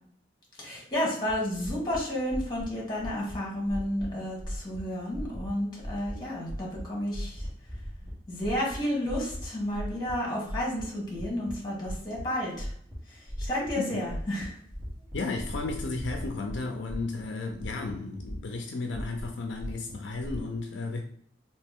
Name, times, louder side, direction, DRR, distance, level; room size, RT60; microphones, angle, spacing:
voice 1, 0.6-7.5 8.3-12.7 13.1-14.6, left 1 dB, 25° left, 1.4 m, -31 dB
sound 1, 1.3-1.4 1.6-2.0 2.3-2.7 3.0-3.4 3.6-4.1 4.4-4.8 5.1-5.5 5.8-6.2 6.4-6.8 7.1-8.1 8.4-8.8 9.1-9.4 9.7-10.1 10.4-11.5 11.8-12.2 12.5-13.0 13.3-13.7 14.0-14.5 14.7-16.6 16.9-17.2 17.5-18.6 18.9-20.4, equal, 20° right, 1.5 m, -37 dB
voice 2, 15.1-21.0, left 3 dB, 70° left, 0.4 m, -34 dB
3.2 x 2.9 x 3.5 m
head